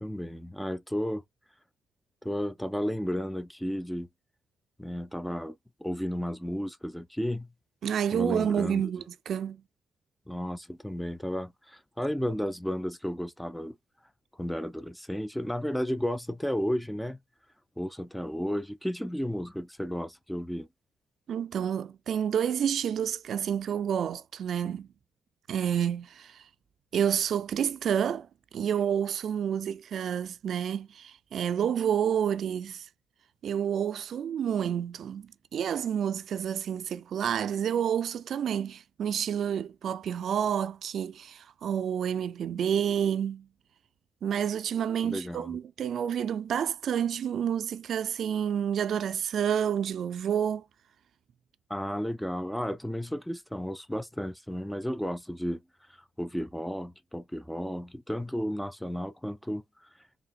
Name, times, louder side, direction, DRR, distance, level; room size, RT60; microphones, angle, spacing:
voice 1, 0.0-1.2 2.2-4.1 4.8-5.5 5.8-7.5 8.1-8.9 10.3-13.7 14.4-17.2 17.8-20.7 45.0-45.6 51.7-55.6 56.2-59.6, equal, 5° left, 0.4 m, -33 dB
voice 2, 7.8-9.6 21.3-24.9 25.5-26.4 26.9-28.3 28.5-32.9 33.4-43.5 44.2-50.6, right 8 dB, 65° right, 0.4 m, -29 dB
5.0 x 3.3 x 2.3 m
cardioid pair, 90°, 0 cm